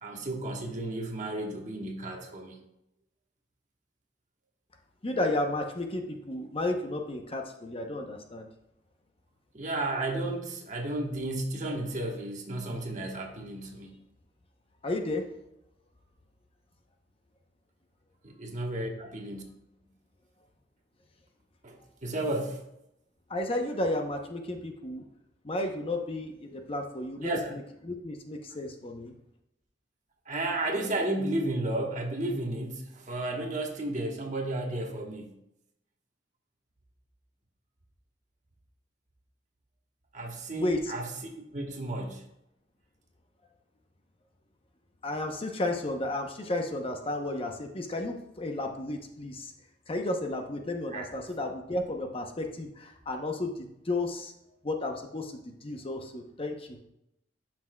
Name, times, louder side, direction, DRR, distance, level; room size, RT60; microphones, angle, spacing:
voice 1, 0.0-2.6 9.5-14.0 18.2-19.4 21.6-22.6 27.2-27.5 30.2-35.4 40.1-42.2 50.9-51.1, right 1 dB, 40° right, 1 dB, 1.2 m, -33 dB
voice 2, 5.0-8.5 14.8-15.2 23.3-25.0 25.4-29.1 40.5-40.9 45.0-49.5 49.9-54.3 54.6-56.8, left 2 dB, 30° left, 4 dB, 0.7 m, -33 dB
12.0 x 6.0 x 2.2 m, 0.82 s
head